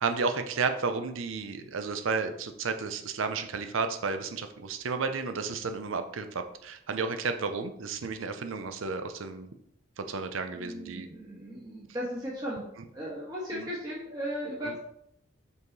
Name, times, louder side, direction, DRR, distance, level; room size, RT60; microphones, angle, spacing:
voice 1, 0.0-9.5 10.0-11.1 13.5-13.7, right 4 dB, 80° right, 8 dB, 0.6 m, -32 dB
voice 2, 10.5-12.6 12.9-14.8, equal, 20° right, -6 dB, 1.3 m, -36 dB
5.5 x 4.7 x 4.0 m, 0.73 s
head